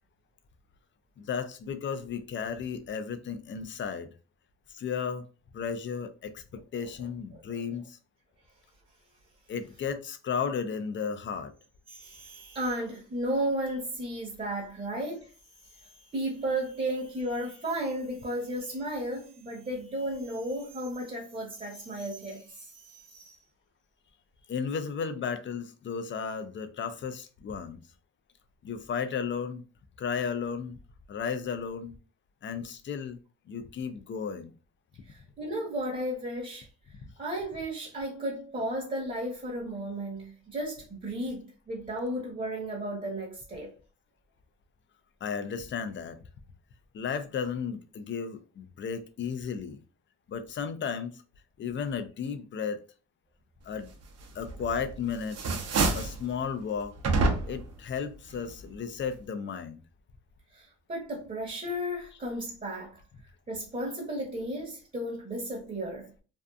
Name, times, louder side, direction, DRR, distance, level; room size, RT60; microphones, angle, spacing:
voice 1, 1.2-4.1 4.7-5.2 5.5-8.0 9.5-11.5 24.5-27.8 28.6-29.6 30.0-30.8 31.1-32.0 32.4-33.2 33.5-34.5 45.2-46.2 46.9-49.8 50.3-51.2 51.6-52.8 53.7-53.9 54.3-55.4 55.9-56.9 57.4-59.8, left 6 dB, 40° left, 0.4 m, -34 dB
voice 2, 11.9-15.3 15.6-23.4 35.0-36.7 37.2-43.7 60.5-63.0 63.5-66.1, right 1 dB, 25° right, 0.9 m, -34 dB
sound 1, 54.5-54.9 55.2-56.2 57.0-57.7, right 3 dB, 55° right, 0.7 m, -27 dB
2.6 x 2.4 x 2.3 m
cardioid pair, 90°, 30 cm